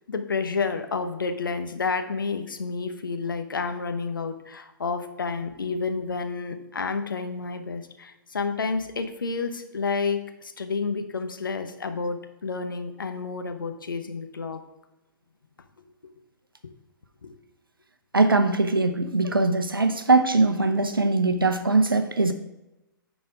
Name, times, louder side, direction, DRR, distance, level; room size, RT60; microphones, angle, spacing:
voice 1, 0.1-14.6 17.2-17.3, left 4 dB, 70° left, 7 dB, 0.9 m, -30 dB
voice 2, 18.1-22.3, right 3 dB, 80° right, 8 dB, 0.7 m, -21 dB
9.4 x 4.1 x 4.9 m, 0.94 s
figure-of-eight pair, 115°, 11 cm